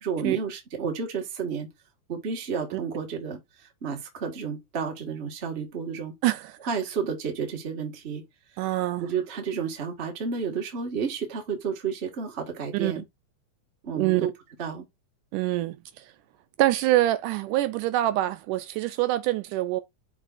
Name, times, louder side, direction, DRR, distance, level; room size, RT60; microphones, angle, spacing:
voice 1, 0.0-1.7 2.1-6.1 6.6-8.3 9.0-13.0 13.8-14.3 14.6-14.8, right 6 dB, 30° right, 1.2 m, -31 dB
voice 2, 6.2-6.6 8.6-9.1 12.7-12.9 14.0-14.3 15.3-16.1 16.6-19.8, right 15 dB, 80° right, 2.0 m, -25 dB
11.5 x 4.1 x 2.5 m
omnidirectional pair, 3.9 m